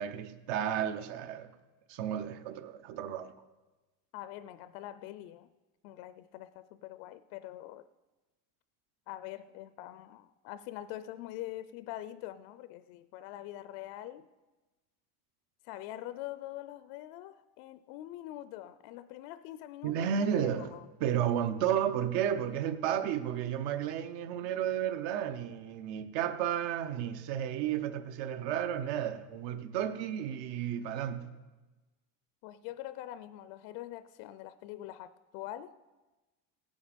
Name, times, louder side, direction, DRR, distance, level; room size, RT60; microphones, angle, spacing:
voice 1, 0.0-1.5 1.9-3.3 19.8-31.3, right 9 dB, 70° right, 1.1 m, -32 dB
voice 2, 4.1-5.5 5.8-7.9 9.1-14.3 15.6-20.9 32.4-35.8, left 14 dB, 90° left, 0.6 m, -44 dB
16.0 x 9.6 x 5.2 m
cardioid pair, 160°, 43 cm